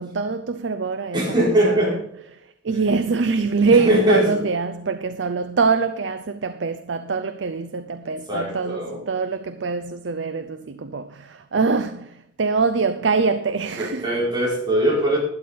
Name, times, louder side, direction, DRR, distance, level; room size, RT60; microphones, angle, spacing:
voice 1, 0.0-1.4 1.6-2.0 2.3-14.1, right 4 dB, 80° right, 0.6 m, -24 dB
voice 2, 1.1-1.9 3.8-4.2 8.3-9.0 13.8-15.2, right 1 dB, 25° right, 5.2 m, -20 dB
12.0 x 10.5 x 4.2 m
head